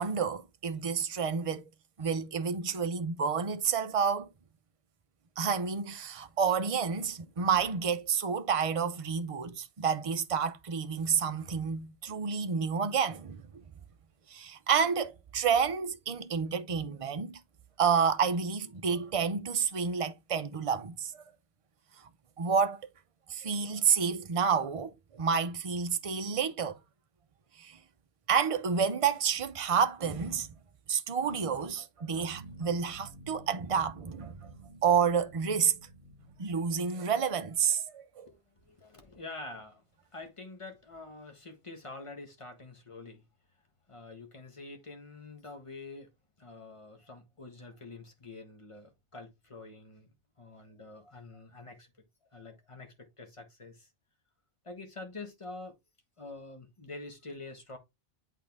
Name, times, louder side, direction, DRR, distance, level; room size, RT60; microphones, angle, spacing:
voice 1, 0.0-1.6 2.0-4.3 5.4-13.4 14.3-17.4 17.8-21.2 22.4-22.8 23.3-26.8 27.6-27.8 28.3-30.5 30.9-34.5 34.8-35.8 36.4-38.3, right 6 dB, 35° right, 0.7 m, -29 dB
sound 1, 32.1-37.4, right 2 dB, 55° right, 1.5 m, -52 dB
voice 2, 38.2-39.8 40.1-43.3 43.9-46.1 46.4-50.1 50.4-51.9 52.2-53.9 54.6-55.7 56.2-57.8, left 3 dB, 30° left, 1.5 m, -46 dB
8.4 x 3.8 x 3.5 m
omnidirectional pair, 1.1 m